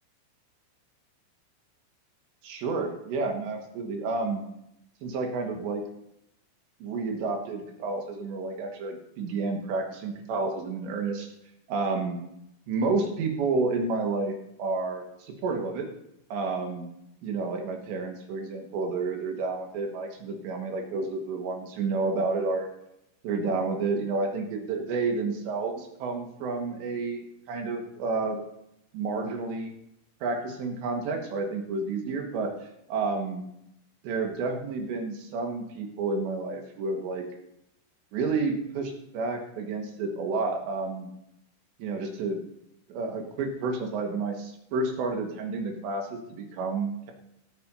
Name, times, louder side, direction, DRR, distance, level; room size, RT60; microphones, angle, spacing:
voice 1, 2.4-4.4 5.0-5.9 6.8-11.3 11.7-12.2 12.7-15.9 16.3-16.9 17.2-22.7 23.2-28.4 28.9-29.7 30.2-32.6 32.9-33.5 34.0-37.3 38.1-41.1 41.8-42.4 42.9-47.1, right 3 dB, 70° right, 2 dB, 3.5 m, -30 dB
17.0 x 13.0 x 2.8 m, 0.80 s
omnidirectional pair, 5.9 m